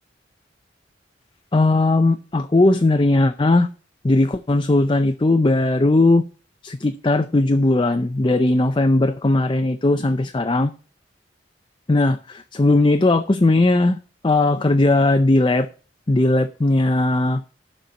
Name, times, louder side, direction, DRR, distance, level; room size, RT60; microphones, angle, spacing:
voice 1, 1.5-3.7 4.0-6.2 6.6-10.7 11.9-14.0 14.2-15.7 16.1-17.4, left 2 dB, 25° left, 0.5 m, -18 dB
11.5 x 4.4 x 6.9 m
head